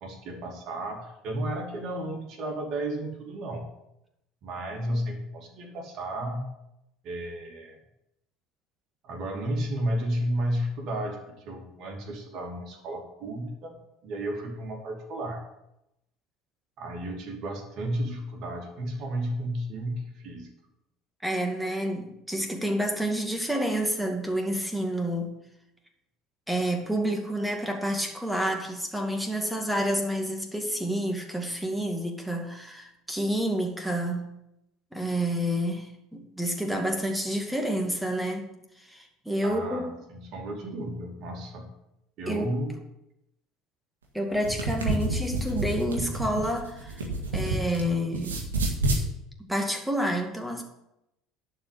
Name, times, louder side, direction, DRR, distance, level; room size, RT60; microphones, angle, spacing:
voice 1, 0.0-3.7 4.4-6.4 7.0-7.8 9.0-13.8 14.0-15.4 16.8-20.5 39.4-41.7 42.2-42.8, right 1 dB, 55° right, 1 dB, 2.8 m, -33 dB
voice 2, 21.2-25.3 26.5-34.3 34.9-38.5 38.8-40.0 42.3-42.5 44.1-47.0 47.3-48.4 49.4-50.6, equal, 5° right, 3 dB, 2.2 m, -29 dB
sound 1, 44.3-47.8 48.1-49.0, right 2 dB, 80° right, 1.8 m, -28 dB
11.0 x 5.0 x 8.4 m, 0.86 s
figure-of-eight pair, 65°, 0 cm